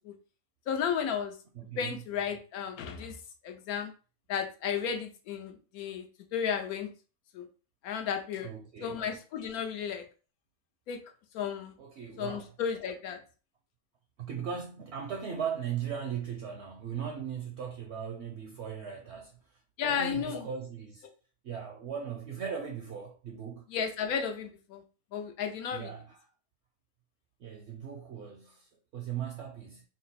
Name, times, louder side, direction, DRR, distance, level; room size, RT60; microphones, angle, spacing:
voice 1, 0.7-1.3 1.8-3.2 3.4-3.9 4.3-6.1 6.3-6.9 7.3-7.4 7.8-8.5 8.8-10.0 10.9-11.0 11.3-11.7 12.2-13.2 19.8-20.4 23.7-24.8 25.1-25.9, left 7 dB, 80° left, 1.2 m, -33 dB
voice 2, 1.5-2.0 8.4-9.0 11.8-12.5 14.2-19.3 19.8-21.1 21.4-23.7 25.7-26.3 27.4-29.8, right 7 dB, 65° right, 0.7 m, -38 dB
3.7 x 2.1 x 4.0 m
omnidirectional pair, 1.5 m